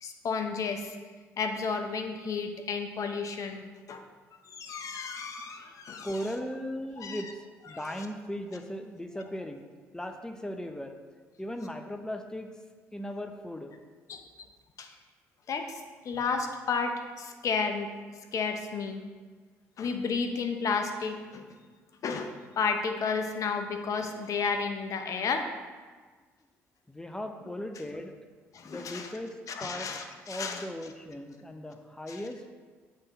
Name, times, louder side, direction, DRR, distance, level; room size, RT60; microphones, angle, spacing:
voice 1, 0.0-1.0 1.4-4.0 4.5-6.3 7.0-7.3 7.6-8.1 9.2-9.3 14.1-14.2 14.8-14.9 15.5-17.9 18.3-19.0 19.8-21.4 22.0-25.5 27.4-27.9 28.5-29.2 29.5-30.7 32.1-32.3, left 5 dB, 55° left, 5 dB, 0.7 m, -32 dB
voice 2, 6.0-7.3 7.7-9.6 9.9-10.9 11.4-12.5 12.9-13.7 26.9-28.1 28.6-29.3 29.6-29.9 30.3-32.5, equal, 10° left, 6 dB, 0.7 m, -37 dB
7.6 x 3.6 x 4.0 m, 1.4 s
hypercardioid pair, 55°, 7 cm